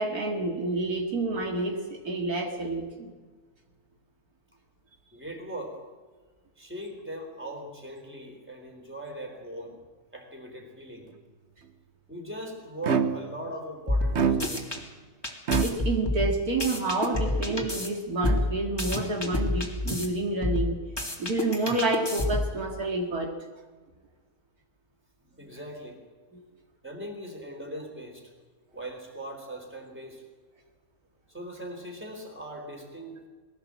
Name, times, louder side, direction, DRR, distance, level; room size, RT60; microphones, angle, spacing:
voice 1, 0.0-3.1 15.6-20.8 21.2-23.3, right 2 dB, 70° right, 1 dB, 2.7 m, -29 dB
voice 2, 5.1-5.8 6.6-9.8 10.1-11.1 12.1-14.7 25.2-26.0 26.8-28.3 28.7-30.2 31.3-33.3, right 1 dB, 5° right, 2 dB, 3.8 m, -40 dB
sound 1, 12.8-13.4 14.1-14.8 15.5-15.6, right 7 dB, 50° right, 1.2 m, -25 dB
sound 2, 13.9-14.8 15.2-17.9 18.2-20.1 20.4-22.6, left 1 dB, 15° left, 2.5 m, -28 dB
21.5 x 16.5 x 7.6 m, 1.4 s
omnidirectional pair, 1.7 m